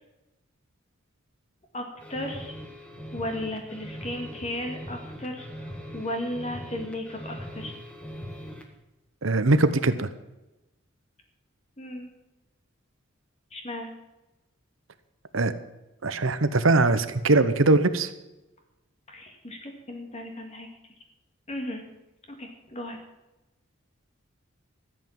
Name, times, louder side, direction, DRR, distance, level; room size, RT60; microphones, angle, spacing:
voice 1, 1.7-2.6 3.1-7.7 11.8-12.1 13.5-13.9 19.1-20.7 21.5-21.8 22.3-23.0, left 1 dB, 30° left, 3 dB, 2.0 m, -35 dB
sound 1, 2.0-8.7, equal, 5° left, 1.7 m, -41 dB
voice 2, 9.2-10.1 15.3-15.5 16.0-18.1, right 2 dB, 75° right, 12 dB, 1.0 m, -21 dB
14.0 x 8.3 x 7.3 m, 1.0 s
head